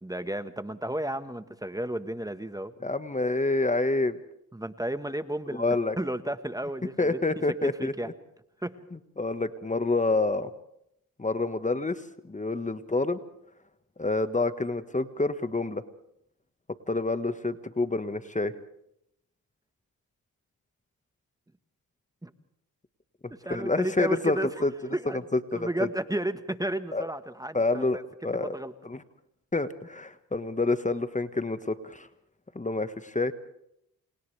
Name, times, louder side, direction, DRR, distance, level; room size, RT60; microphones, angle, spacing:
voice 1, 0.0-2.7 4.5-7.2 7.5-8.1 8.6-8.7 22.2-22.3 23.4-24.5 24.9-25.2 25.5-28.0 28.4-28.7, right 1 dB, 10° right, 10 dB, 1.4 m, -33 dB
voice 2, 2.8-4.2 5.5-6.0 7.0-8.1 9.2-10.5 11.2-13.2 14.0-15.8 16.9-18.5 23.5-24.7 25.3-25.7 26.9-27.0 27.5-28.0 28.2-28.6 28.8-29.0 29.5-32.1 32.5-33.3, left 2 dB, 20° left, 11 dB, 1.5 m, -28 dB
29.0 x 28.5 x 3.5 m, 0.75 s
cardioid pair, 65°, 35 cm